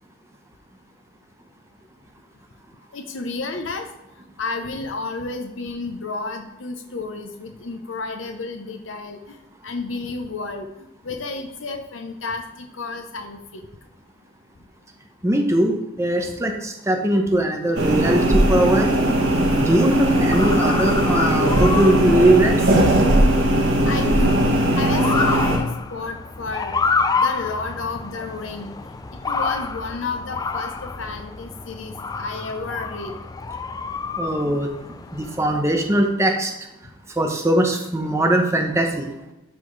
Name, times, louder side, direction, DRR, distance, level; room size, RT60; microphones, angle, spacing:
voice 1, 2.9-3.9 4.4-9.2 9.6-13.6 23.8-24.5 24.8-26.7 27.2-28.7 29.3-33.1, left 3 dB, 75° left, 4 dB, 0.7 m, -31 dB
voice 2, 15.2-18.2 18.5-18.9 19.5-22.6 34.2-34.7 35.1-36.5 37.2-39.1, right 1 dB, 15° right, 2 dB, 0.7 m, -20 dB
sound 1, 17.8-25.6, right 1 dB, 75° right, 1.3 m, -18 dB
Motor vehicle (road) / Siren, 20.3-35.9, left 4 dB, 20° left, 0.3 m, -29 dB
12.0 x 4.1 x 3.2 m, 0.92 s
head